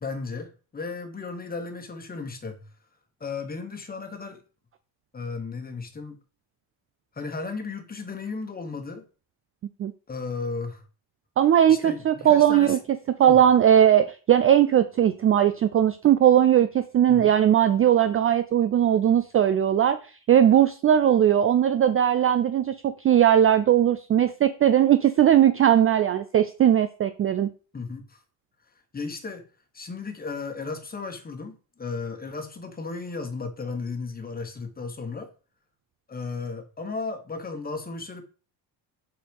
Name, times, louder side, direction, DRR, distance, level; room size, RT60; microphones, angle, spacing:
voice 1, 0.0-2.7 3.2-4.4 5.1-6.2 7.1-9.1 10.1-10.8 11.7-12.8 13.3-13.4 17.1-17.3 27.7-28.2 28.9-29.5 29.7-35.3 36.1-38.2, left 4 dB, 20° left, 1.3 m, -35 dB
voice 2, 11.4-12.8 13.2-20.0 20.3-27.5, right 10 dB, 30° right, 0.4 m, -19 dB
7.6 x 4.4 x 5.4 m
cardioid pair, 155°, 46 cm